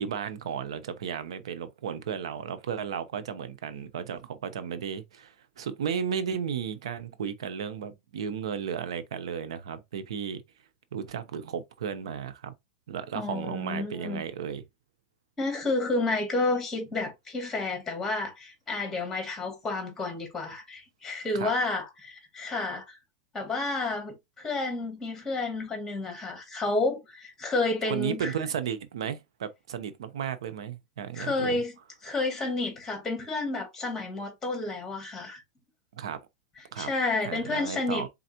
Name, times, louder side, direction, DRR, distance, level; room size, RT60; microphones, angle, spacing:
voice 1, 0.0-10.4 10.9-12.5 12.9-14.6 21.3-21.5 27.9-31.6 35.9-36.2 36.7-36.9 37.2-38.1, right 7 dB, 90° right, 0.8 m, -34 dB
voice 2, 13.1-14.2 15.4-23.0 23.3-28.3 31.1-31.7 32.0-35.4 36.8-38.1, left 3 dB, 15° left, 2.3 m, -30 dB
4.3 x 3.9 x 2.9 m
supercardioid pair, 145°, 3 cm